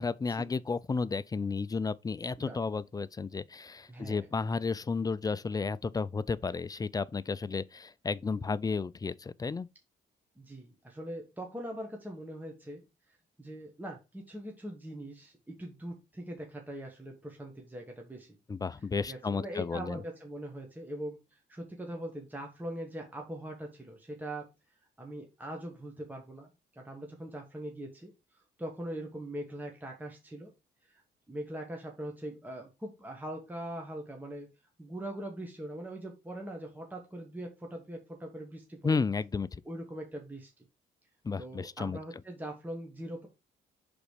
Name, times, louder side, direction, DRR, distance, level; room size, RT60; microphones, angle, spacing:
voice 1, 0.0-9.7 18.5-20.0 38.8-39.6 41.2-42.0, left 4 dB, 20° left, 0.3 m, -32 dB
voice 2, 3.9-4.3 10.4-12.8 13.4-18.4 19.0-24.5 25.0-28.1 28.6-30.5 30.8-31.0 31.3-34.5 34.8-39.0 39.6-40.5 41.4-43.3, right 1 dB, 10° right, 1.4 m, -41 dB
5.1 x 4.0 x 4.8 m
cardioid pair, 90°, 20 cm